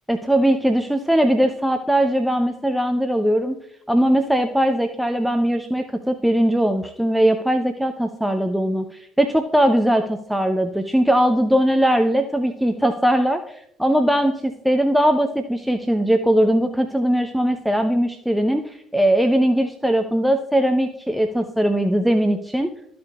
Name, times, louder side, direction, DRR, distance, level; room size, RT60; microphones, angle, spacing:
voice 1, 0.1-3.6 3.9-22.7, equal, 5° right, 6 dB, 0.6 m, -20 dB
13.5 x 5.0 x 2.3 m, 0.71 s
figure-of-eight pair, 50°, 0 cm